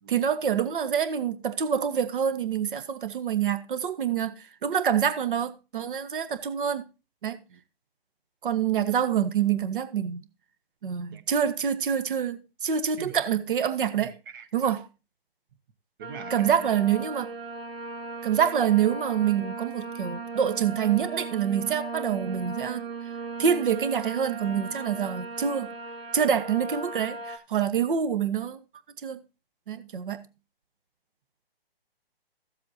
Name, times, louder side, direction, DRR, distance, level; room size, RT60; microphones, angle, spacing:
voice 1, 0.1-6.8 7.2-7.4 8.4-10.2 10.8-14.2 14.5-14.8 16.3-17.3 18.2-22.8 23.4-25.7 26.1-28.6 29.0-29.2 29.7-30.2, right 8 dB, 55° right, 1.3 m, -26 dB
voice 2, 14.0-14.9 16.0-16.7, right 7 dB, 20° right, 0.7 m, -43 dB
sound 1, 16.0-27.4, right 3 dB, 70° right, 1.5 m, -37 dB
15.0 x 7.6 x 2.8 m
hypercardioid pair, 150°, 31 cm